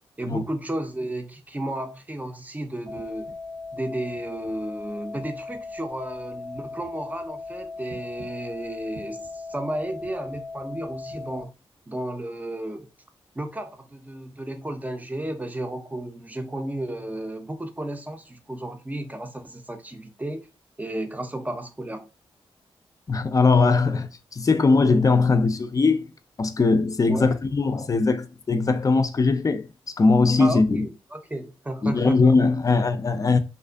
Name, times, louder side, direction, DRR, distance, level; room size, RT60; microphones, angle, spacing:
voice 1, 0.2-3.3 3.7-11.5 11.9-12.9 13.3-20.5 20.8-22.1 27.1-27.4 30.4-32.3, right 1 dB, 15° right, 0.5 m, -33 dB
sound 1, 2.9-11.4, left 3 dB, 85° right, 1.0 m, -38 dB
voice 2, 23.1-26.1 26.4-29.7 30.0-30.9 31.8-33.4, left 3 dB, 35° left, 0.4 m, -20 dB
2.4 x 2.3 x 2.4 m
cardioid pair, 50°, 10 cm